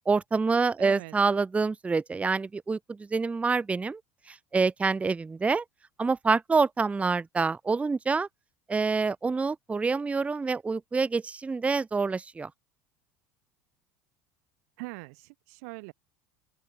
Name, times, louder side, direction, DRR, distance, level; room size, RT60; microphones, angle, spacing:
voice 1, 0.0-4.0 4.3-5.6 6.0-8.3 8.7-12.5, right 4 dB, 15° right, 0.5 m, -27 dB
voice 2, 0.8-1.1 14.8-15.9, right 31 dB, 75° right, 2.1 m, -41 dB
open air
hypercardioid pair, 90°, 8 cm